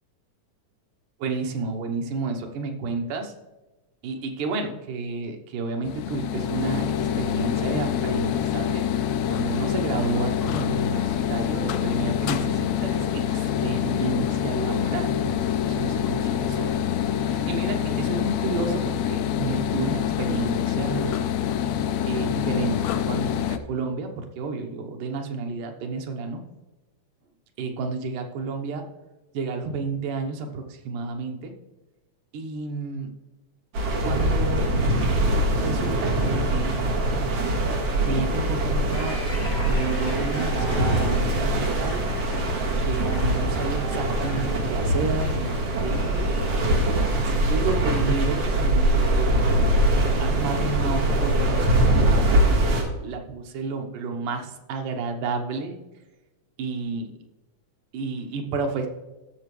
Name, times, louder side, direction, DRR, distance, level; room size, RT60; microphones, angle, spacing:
voice 1, 1.2-3.3 4.0-8.8 9.3-16.7 17.0-21.2 22.1-26.4 27.6-28.9 29.3-31.5 32.3-33.1 34.0-34.7 35.5-36.8 38.1-39.2 39.7-42.1 42.9-46.3 47.2-49.4 49.9-55.8 56.6-57.1 57.9-58.9, right 4 dB, 90° right, 4 dB, 2.6 m, -31 dB
sound 1, 5.9-23.6, left 9 dB, 75° left, 1.7 m, -26 dB
sound 2, 33.8-52.8, right 1 dB, 60° right, 2.6 m, -23 dB
sound 3, 38.9-48.2, left 1 dB, 20° left, 3.6 m, -40 dB
16.0 x 6.7 x 3.2 m, 1.1 s
omnidirectional pair, 3.6 m